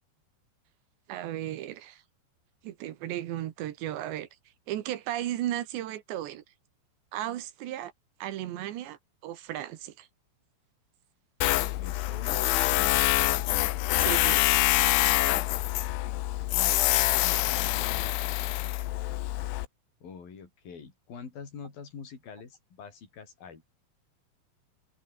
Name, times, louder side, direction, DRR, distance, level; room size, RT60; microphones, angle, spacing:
voice 1, 1.1-2.0 2.6-4.3 4.7-6.4 7.1-7.9 8.2-10.1 14.0-14.5, right 13 dB, 70° right, 3.5 m, -35 dB
Tools, 11.4-19.7, left 17 dB, 85° left, 3.4 m, -25 dB
voice 2, 11.8-13.1 15.0-15.5 17.5-18.1 20.0-23.6, left 6 dB, 50° left, 6.8 m, -45 dB
omnidirectional pair, 5.4 m